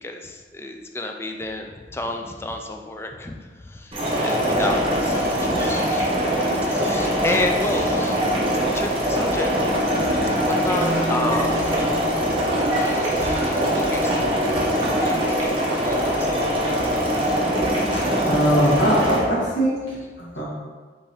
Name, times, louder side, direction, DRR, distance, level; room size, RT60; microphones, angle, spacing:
voice 1, 0.0-6.3 6.6-8.3 8.7-9.5 10.3-11.9 12.7-16.4 16.7-16.8 17.9-18.0, left 2 dB, 15° left, 3 dB, 0.3 m, -31 dB
sound 1, 3.9-19.2, equal, 30° right, 0.9 m, -22 dB
Marimba xylophone, 10.7-13.7, right 2 dB, 5° right, 1.4 m, -34 dB
voice 2, 18.3-20.4, equal, 80° left, -6 dB, 1.4 m, -21 dB
5.2 x 3.4 x 2.8 m, 1.4 s
head